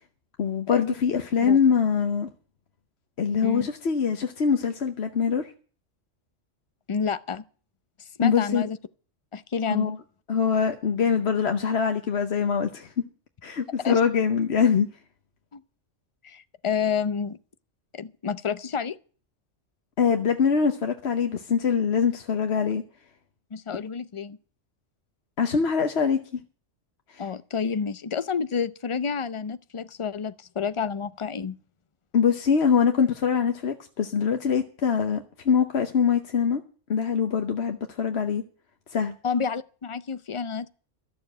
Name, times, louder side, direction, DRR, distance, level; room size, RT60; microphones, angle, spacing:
voice 1, 0.4-2.3 3.2-5.5 8.2-8.7 9.7-10.0 10.3-12.9 13.4-14.9 20.0-22.8 25.4-26.4 27.1-27.3 32.1-36.6 36.9-38.4 38.9-39.2, left 6 dB, 60° left, 1.2 m, -23 dB
voice 2, 6.9-7.4 8.2-8.8 9.3-9.9 13.8-14.0 15.5-15.6 16.2-17.4 17.9-19.0 23.5-24.4 27.2-31.6 39.2-40.7, left 6 dB, 35° left, 0.6 m, -29 dB
13.5 x 7.0 x 8.7 m
omnidirectional pair, 1.3 m